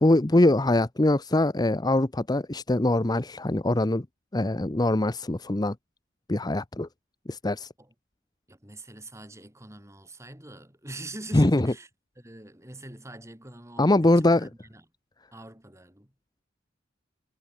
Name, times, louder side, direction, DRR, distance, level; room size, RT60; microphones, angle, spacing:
voice 1, 0.0-4.1 4.3-5.8 6.3-6.9 7.3-7.7 11.3-11.7 13.8-14.5, left 1 dB, 20° left, 0.8 m, -23 dB
voice 2, 8.5-11.9 12.2-14.8 15.3-16.1, right 2 dB, 15° right, 4.3 m, -44 dB
head